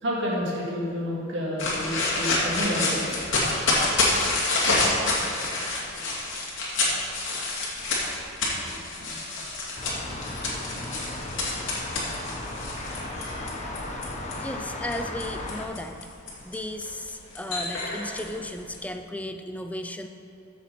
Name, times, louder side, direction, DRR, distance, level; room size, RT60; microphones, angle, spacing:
voice 1, 0.0-3.2, equal, 65° right, -4 dB, 2.1 m, -29 dB
sound 1, 1.6-14.3 14.9-18.8, left 2 dB, 65° left, 2.4 m, -28 dB
sound 2, 9.8-15.6, left 1 dB, 35° left, 1.1 m, -35 dB
voice 2, 14.4-16.0 16.4-20.1, left 1 dB, 5° left, 6 dB, 0.5 m, -35 dB
14.0 x 7.1 x 4.3 m, 2.7 s
head